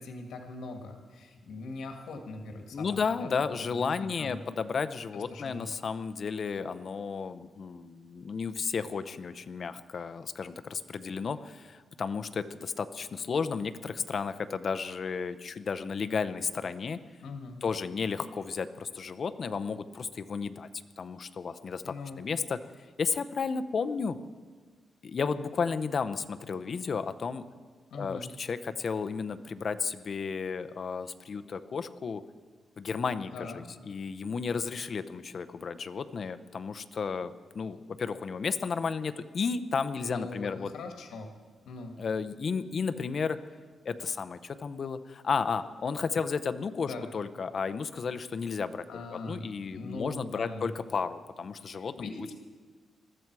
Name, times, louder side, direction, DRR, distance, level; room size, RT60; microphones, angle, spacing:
voice 1, 0.0-3.3 3.6-4.4 5.1-5.7 17.2-17.6 21.8-22.2 27.9-28.3 33.3-33.7 40.0-41.3 41.7-41.9 46.8-47.1 48.9-49.4 49.7-50.7 51.6-52.3, left 3 dB, 85° left, 3 dB, 1.9 m, -41 dB
voice 2, 2.7-17.0 17.6-20.7 21.0-22.6 23.0-24.2 25.0-27.4 27.9-32.2 32.8-40.7 42.0-43.4 43.8-52.1, left 5 dB, 40° left, 11 dB, 0.7 m, -33 dB
21.0 x 13.5 x 4.7 m, 1.5 s
wide cardioid pair, 145°, 0 cm